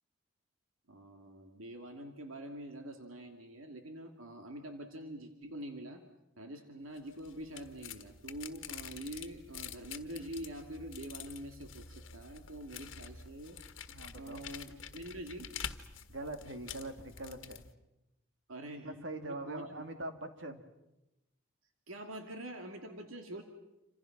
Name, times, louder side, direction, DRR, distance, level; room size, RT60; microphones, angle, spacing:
voice 1, 0.9-6.0 6.4-13.6 14.1-15.5 18.5-19.0 19.3-19.8 21.9-23.4, right 1 dB, 90° right, 4 dB, 2.5 m, -45 dB
sound 1, 7.0-17.7, left 7 dB, 70° left, 1.5 m, -47 dB
voice 2, 13.9-14.4 16.1-17.7 18.8-20.6, right 2 dB, 65° right, 7 dB, 2.4 m, -43 dB
28.0 x 27.0 x 6.1 m, 0.94 s
head